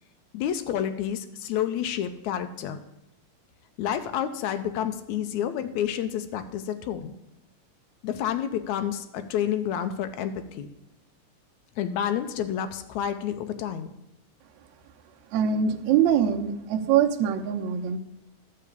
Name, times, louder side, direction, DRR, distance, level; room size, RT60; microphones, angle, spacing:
voice 1, 0.3-2.8 3.8-7.1 8.0-10.7 11.8-13.9, left 9 dB, 80° left, 9 dB, 1.8 m, -29 dB
voice 2, 15.3-18.0, right 8 dB, 70° right, 2 dB, 1.9 m, -23 dB
11.5 x 4.7 x 8.4 m, 0.86 s
omnidirectional pair, 3.9 m